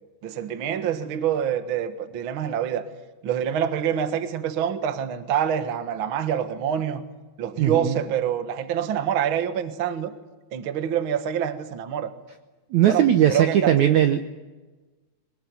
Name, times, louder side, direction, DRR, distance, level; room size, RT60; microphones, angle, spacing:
voice 1, 0.2-2.8 3.2-7.0 7.4-10.1 10.5-12.1 12.9-14.0, right 9 dB, 70° right, 1.2 m, -26 dB
voice 2, 7.6-8.0 12.7-14.2, right 10 dB, 90° right, 1.6 m, -19 dB
22.5 x 20.0 x 9.5 m
omnidirectional pair, 4.7 m